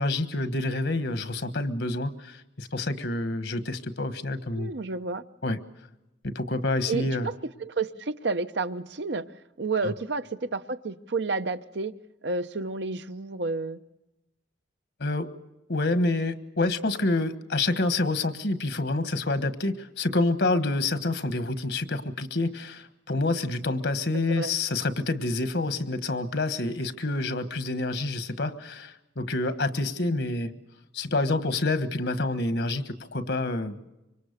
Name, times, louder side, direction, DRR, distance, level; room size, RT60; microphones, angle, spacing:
voice 1, 0.0-4.7 5.4-5.6 6.2-7.3 9.8-9.9 15.0-15.3 15.7-30.5 30.9-33.9, left 2 dB, 70° left, 11 dB, 1.4 m, -28 dB
voice 2, 4.5-5.2 6.9-7.3 7.6-9.2 9.6-11.9 12.2-13.8 24.1-24.5, right 3 dB, 70° right, 10 dB, 0.8 m, -30 dB
25.5 x 24.5 x 6.7 m, 0.96 s
head